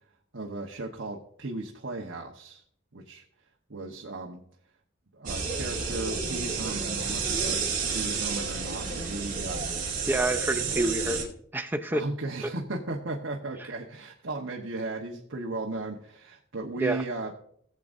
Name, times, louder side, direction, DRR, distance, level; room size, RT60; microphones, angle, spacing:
voice 1, 0.3-2.6 2.9-3.2 3.7-4.4 5.1-9.6 11.9-17.3, right 2 dB, 65° right, 0 dB, 1.1 m, -36 dB
sound 1, 5.3-11.2, right 5 dB, 40° right, 2.3 m, -30 dB
voice 2, 10.1-12.0 16.8-17.0, right 2 dB, 10° right, 7 dB, 0.6 m, -28 dB
18.0 x 7.7 x 2.6 m, 0.65 s
head